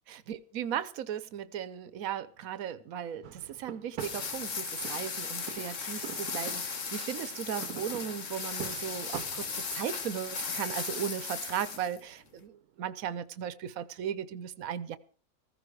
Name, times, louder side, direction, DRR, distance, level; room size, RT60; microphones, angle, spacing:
voice 1, 0.1-15.0, right 9 dB, 70° right, 15 dB, 1.3 m, -37 dB
sound 1, 3.2-12.9, right 10 dB, 85° right, 1.4 m, -47 dB
sound 2, 4.0-12.0, left 5 dB, 55° left, 1.6 m, -37 dB
15.5 x 15.0 x 4.7 m, 0.40 s
omnidirectional pair, 1.6 m